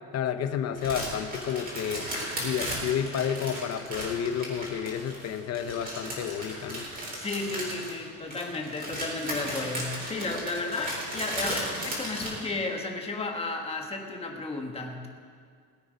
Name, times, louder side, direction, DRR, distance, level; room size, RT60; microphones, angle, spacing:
voice 1, 0.1-2.1 2.4-6.9, left 8 dB, 40° left, 9 dB, 0.9 m, -30 dB
sound 1, 0.8-12.3, right 1 dB, 20° right, 4.0 m, -35 dB
voice 2, 7.1-15.1, left 3 dB, 15° left, 2 dB, 1.4 m, -33 dB
20.5 x 8.5 x 5.2 m, 2.1 s
cardioid pair, 155°, 41 cm